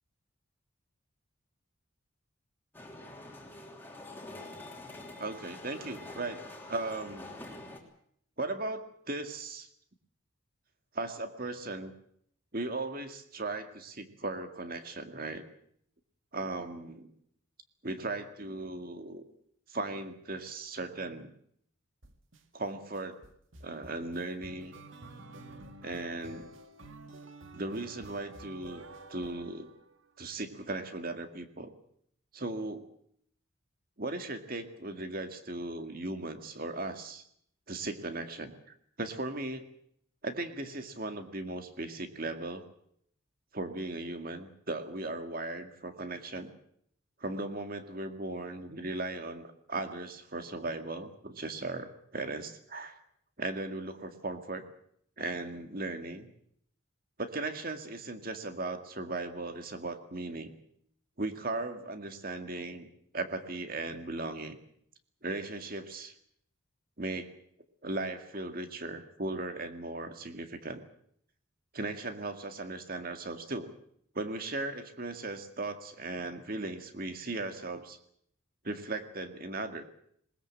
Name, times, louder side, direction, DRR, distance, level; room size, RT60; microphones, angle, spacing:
sound 1, 2.7-7.8, left 2 dB, 10° left, 3.1 m, -46 dB
voice 1, 5.2-6.4 6.7-7.3 8.4-9.7 10.9-11.9 12.5-15.5 16.3-17.1 17.8-19.2 19.7-21.3 22.5-23.2 23.6-24.7 25.8-26.5 27.5-29.7 30.2-31.7 32.3-32.9 34.0-37.2 37.7-38.5 39.0-39.7 40.2-42.7 43.5-46.5 47.2-53.0 53.4-54.7 55.2-56.3 57.2-60.5 61.2-62.9 63.1-64.6 65.2-66.1 67.0-67.3 67.8-70.8 71.7-73.7 74.1-78.0 78.6-79.8, right 2 dB, 45° right, 7 dB, 2.0 m, -37 dB
sound 2, 22.0-22.4 22.9-30.1, right 2 dB, 65° right, 2.0 m, -50 dB
20.5 x 20.0 x 7.7 m, 0.67 s
head